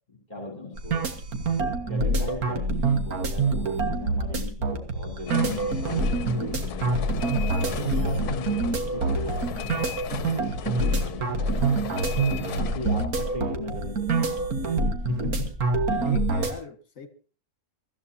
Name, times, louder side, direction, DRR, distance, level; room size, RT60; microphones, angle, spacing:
voice 1, 0.1-1.1 1.8-7.0 7.6-10.0 10.6-11.6 12.6-14.7 15.1-15.2 15.8-16.0, left 3 dB, 30° left, 4.1 m, -38 dB
sound 1, 0.8-16.5, right 3 dB, 70° right, 2.1 m, -26 dB
sound 2, 5.3-13.1, left 9 dB, 80° left, 1.4 m, -36 dB
voice 2, 7.6-7.9 16.0-17.1, left 4 dB, 60° left, 2.1 m, -41 dB
23.0 x 14.5 x 2.8 m
omnidirectional pair, 1.6 m